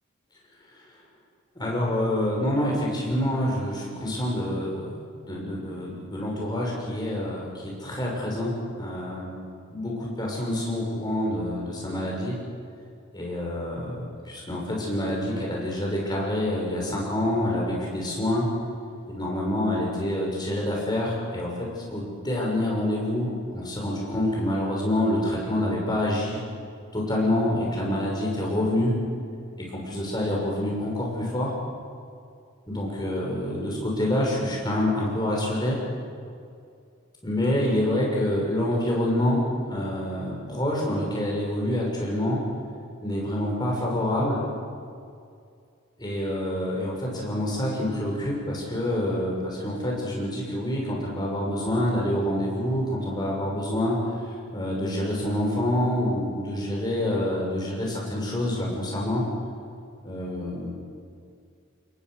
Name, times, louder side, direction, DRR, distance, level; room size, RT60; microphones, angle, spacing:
voice 1, 1.5-4.9 5.2-9.4 9.7-12.4 13.1-14.0 14.2-18.5 19.1-26.4 26.9-29.0 29.6-31.5 32.7-35.8 37.2-42.4 43.0-44.4 46.0-54.0 54.5-59.2 60.0-60.7, left 1 dB, 20° left, -2 dB, 6.7 m, -27 dB
27.5 x 21.5 x 6.7 m, 2.3 s
head